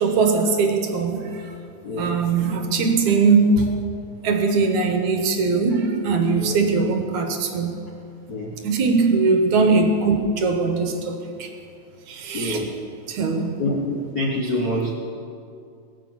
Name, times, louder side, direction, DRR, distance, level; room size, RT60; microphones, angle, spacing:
voice 1, 0.0-1.5 2.0-3.7 4.2-7.8 8.6-11.5 12.1-12.7 13.1-13.5, right 4 dB, 65° right, 4 dB, 2.5 m, -20 dB
voice 2, 1.8-2.2 6.4-6.5 8.3-8.5 12.3-12.7 13.6-14.9, left 1 dB, 75° left, -3 dB, 0.8 m, -26 dB
21.5 x 7.2 x 7.4 m, 2.4 s
omnidirectional pair, 4.0 m